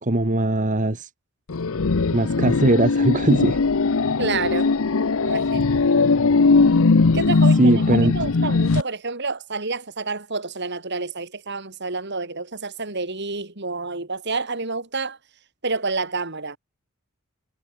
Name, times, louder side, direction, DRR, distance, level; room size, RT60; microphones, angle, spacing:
voice 1, 0.0-1.1 2.1-3.6 7.6-8.1, right 1 dB, 35° right, 1.6 m, -20 dB
sound 1, 1.5-8.8, left 4 dB, 70° left, 0.7 m, -19 dB
voice 2, 4.2-4.7 5.2-5.7 7.1-15.2 15.6-16.6, right 3 dB, 55° right, 3.6 m, -29 dB
head